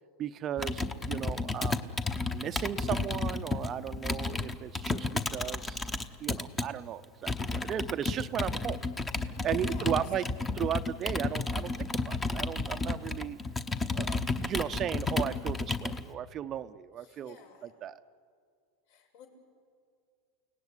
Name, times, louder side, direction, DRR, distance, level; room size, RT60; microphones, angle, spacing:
voice 1, 0.2-1.9 2.3-5.9 6.2-8.8 9.4-10.3 10.5-13.4 13.9-17.4 17.8-18.0, right 10 dB, 25° right, 12 dB, 0.6 m, -35 dB
Computer keyboard, 0.6-6.7 7.3-16.0, left 3 dB, 10° left, 0.9 m, -32 dB
voice 2, 9.5-10.0 17.0-17.7 18.9-19.3, left 4 dB, 75° left, 2 dB, 7.0 m, -52 dB
29.5 x 18.0 x 9.9 m, 2.2 s
supercardioid pair, 160°, 0 cm